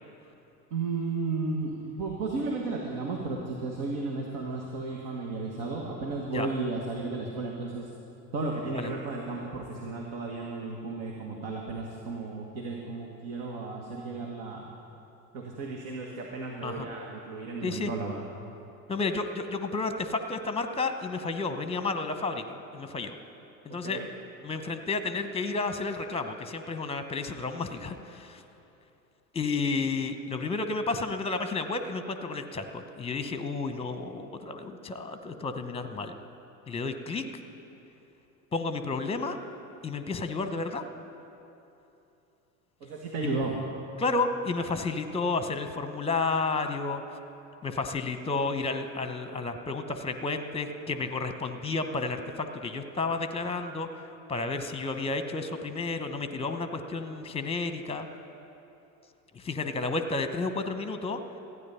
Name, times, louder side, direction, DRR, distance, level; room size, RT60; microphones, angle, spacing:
voice 1, 0.7-7.9 8.3-14.7 15.3-18.2 23.7-24.1 42.8-43.6, right 3 dB, 65° right, 0 dB, 1.7 m, -34 dB
voice 2, 18.9-23.2 23.6-24.0 24.4-28.4 29.3-36.2 36.7-37.3 38.5-39.4 39.8-40.9 43.2-43.4 44.0-47.0 47.6-53.9 54.3-58.1 59.3-61.2, left 3 dB, 10° left, 9 dB, 0.9 m, -31 dB
15.0 x 9.6 x 5.6 m, 2.9 s
hypercardioid pair, 80°, 49 cm